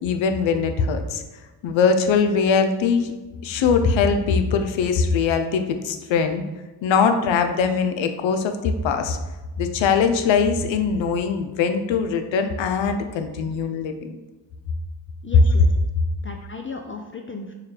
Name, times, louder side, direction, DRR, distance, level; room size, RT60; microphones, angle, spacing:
voice 1, 0.0-1.2 1.6-3.1 3.4-6.4 6.8-9.2 9.6-13.9, left 5 dB, 80° left, 7 dB, 0.5 m, -21 dB
voice 2, 15.2-15.7 16.2-17.5, left 3 dB, 30° left, 3 dB, 0.4 m, -35 dB
4.6 x 2.2 x 3.3 m, 1.2 s
cardioid pair, 50°, 45 cm